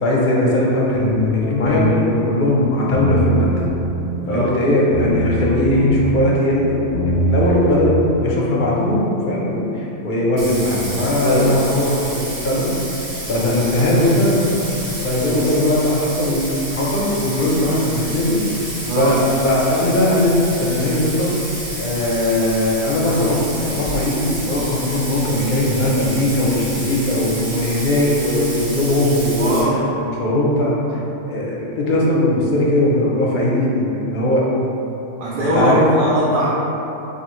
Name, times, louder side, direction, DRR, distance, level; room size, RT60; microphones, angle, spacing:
voice 1, 0.0-3.6 4.3-6.8 7.3-12.7 13.3-14.4 15.0-18.4 19.0-21.3 21.8-29.6 30.0-31.0 31.3-34.5 35.4-35.8, left 1 dB, 50° left, -4 dB, 0.6 m, -19 dB
sound 1, 0.9-1.9 2.9-3.9 4.9-5.9 6.9-7.9, equal, 25° right, 1.1 m, -21 dB
Bathtub (filling or washing), 10.4-29.6, right 1 dB, 75° right, 1.2 m, -30 dB
voice 2, 11.2-11.5 18.9-19.2 29.4-29.8 35.2-36.5, right 2 dB, 60° right, -7 dB, 0.6 m, -20 dB
4.0 x 2.7 x 3.0 m, 3.0 s
omnidirectional pair, 1.3 m